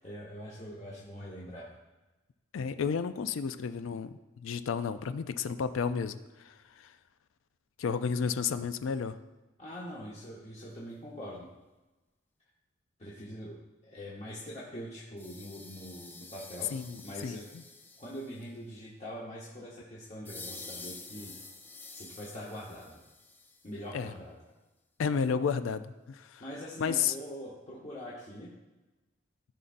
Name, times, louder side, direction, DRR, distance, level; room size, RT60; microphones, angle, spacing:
voice 1, 0.0-1.7 9.6-11.5 13.0-16.7 17.0-17.5 18.0-21.3 21.9-23.0 23.6-24.3 26.4-28.5, equal, 35° left, -6 dB, 1.1 m, -43 dB
voice 2, 2.5-6.9 7.8-9.2 16.7-17.6 23.9-24.1 25.0-26.4 26.8-27.2, left 6 dB, 80° left, 12 dB, 0.4 m, -32 dB
sound 1, 15.2-18.5 20.3-23.8, left 3 dB, 10° left, 0.4 m, -48 dB
14.0 x 5.4 x 2.5 m, 1.1 s
head